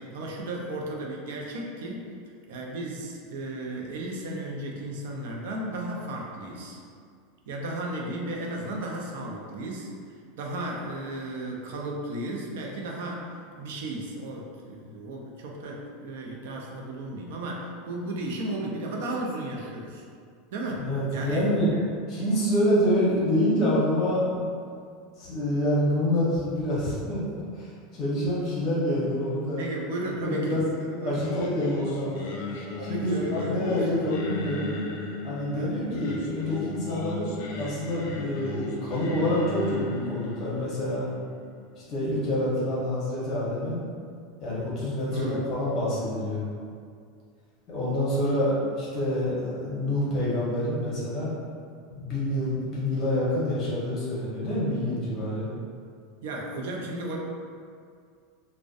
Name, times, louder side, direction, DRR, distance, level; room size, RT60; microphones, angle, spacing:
voice 1, 0.0-2.0 2.5-6.8 7.5-9.9 10.4-20.0 20.5-21.5 21.7-21.9 22.2-22.3 29.6-31.2 32.8-34.0 35.5-35.8 45.1-45.5 56.2-57.2, right 1 dB, 75° right, -1 dB, 0.4 m, -34 dB
voice 2, 20.8-21.7 22.1-24.5 25.2-29.7 30.2-30.7 31.0-32.2 32.8-34.7 35.2-41.1 41.9-43.8 44.4-46.5 47.7-51.3 51.9-55.5, left 1 dB, 30° left, -8 dB, 0.7 m, -27 dB
Singing, 31.1-42.3, left 3 dB, 65° left, 0.3 m, -36 dB
2.5 x 2.0 x 2.4 m, 2.2 s
supercardioid pair, 165°, 0 cm